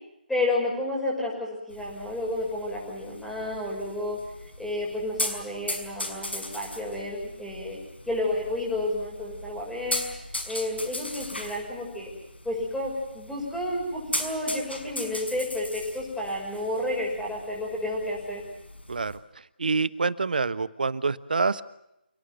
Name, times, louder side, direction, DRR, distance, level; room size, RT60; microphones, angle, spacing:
voice 1, 0.3-4.2 4.6-7.8 8.1-10.0 10.5-12.1 12.4-18.4, left 1 dB, ahead, -3 dB, 6.6 m, -31 dB
sound 1, 1.7-19.2, left 1 dB, 85° left, 5.7 m, -38 dB
voice 2, 19.6-21.6, right 4 dB, 55° right, 16 dB, 1.2 m, -26 dB
29.0 x 18.0 x 7.8 m, 0.85 s
figure-of-eight pair, 150°, 6 cm